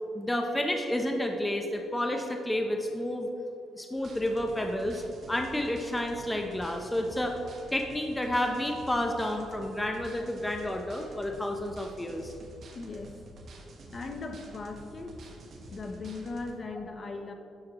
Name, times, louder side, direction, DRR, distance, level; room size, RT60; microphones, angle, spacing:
voice 1, 0.1-3.3 3.7-7.4 7.7-12.3 16.8-16.9, left 1 dB, 10° left, 3 dB, 0.6 m, -30 dB
sound 1, 4.0-16.5, right 1 dB, 55° right, 1.1 m, -49 dB
voice 2, 12.7-13.2 13.9-15.1 15.7-17.3, left 3 dB, 40° left, 4 dB, 0.8 m, -38 dB
9.5 x 6.3 x 3.0 m, 2.6 s
cardioid pair, 90°, 0 cm